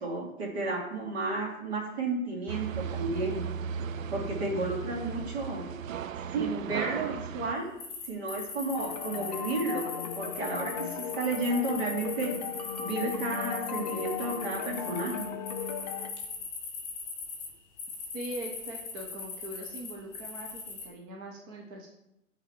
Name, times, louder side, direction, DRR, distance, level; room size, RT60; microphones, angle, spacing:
voice 1, 0.0-3.4 4.1-5.6 6.2-7.7 8.1-9.8 10.2-12.4 12.8-15.3, right 2 dB, 50° right, 0 dB, 2.3 m, -32 dB
sound 1, 2.5-7.5, right 7 dB, 75° right, 0.5 m, -36 dB
sound 2, 7.8-17.5 17.8-20.9, left 4 dB, 10° left, 2.0 m, -40 dB
sound 3, 8.8-16.1, left 8 dB, 35° left, 0.4 m, -37 dB
voice 2, 18.1-21.9, right 1 dB, 15° right, 0 dB, 0.6 m, -41 dB
7.8 x 4.1 x 4.4 m, 0.89 s
figure-of-eight pair, 125°, 41 cm